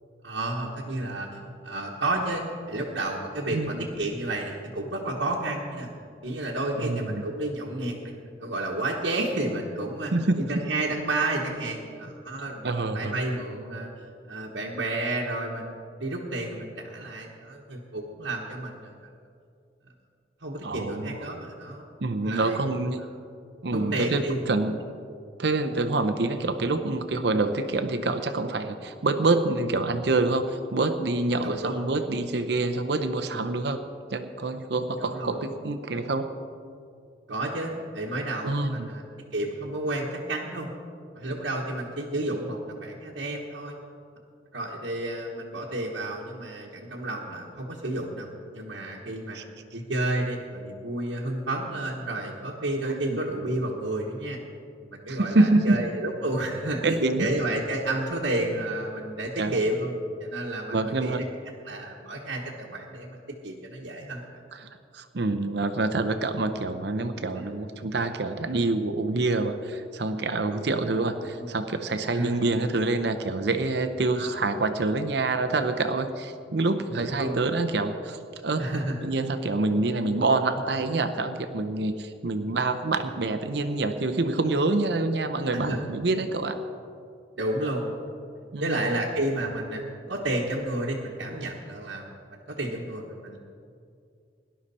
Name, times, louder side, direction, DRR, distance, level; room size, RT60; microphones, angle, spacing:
voice 1, 0.2-5.9 6.2-8.1 8.4-10.1 10.4-13.9 14.3-15.7 16.0-18.9 20.4-21.9 22.2-22.6 23.7-24.4 31.4-31.9 35.0-35.4 37.3-39.0 39.3-40.7 41.1-43.7 44.5-49.4 49.7-54.4 54.8-59.9 60.2-61.2 61.7-64.2 67.4-67.5 70.5-70.7 71.2-71.5 72.1-72.4 74.1-74.4 76.9-77.4 78.6-78.9 85.5-85.8 87.4-88.0 88.6-89.8 90.1-92.1 92.5-93.4, right 2 dB, 80° right, -4 dB, 1.3 m, -31 dB
voice 2, 3.5-3.8 6.8-7.2 10.1-10.4 12.6-13.1 20.6-21.2 22.0-23.0 23.6-24.8 25.4-33.8 34.1-36.3 38.4-38.9 49.3-49.4 52.9-53.2 55.1-55.8 56.8-57.3 59.4-59.6 60.7-61.3 64.5-78.7 79.0-86.6 88.5-89.0, right 2 dB, 60° right, 8 dB, 0.7 m, -26 dB
17.5 x 11.5 x 4.2 m, 2.4 s
head